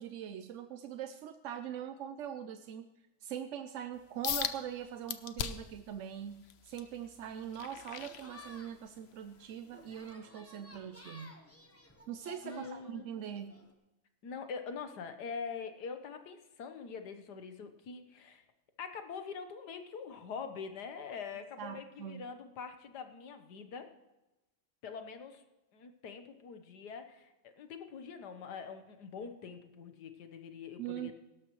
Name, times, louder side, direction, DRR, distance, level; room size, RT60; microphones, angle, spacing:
voice 1, 0.0-2.9 3.2-11.3 12.1-13.6 21.6-22.2 30.8-31.1, right 9 dB, 65° right, 9 dB, 0.8 m, -42 dB
sound 1, 4.2-4.6 5.1-5.8 6.3-8.8 9.3-9.6 10.1-10.2, left 9 dB, 60° left, 0.7 m, -38 dB
sound 2, 7.4-13.7, left 2 dB, 10° left, 0.9 m, -56 dB
voice 2, 12.4-13.0 14.2-18.4 18.8-23.9 24.8-25.4 25.7-31.1, left 5 dB, 85° left, 8 dB, 1.7 m, -44 dB
17.5 x 13.0 x 3.1 m, 1.0 s
omnidirectional pair, 1.7 m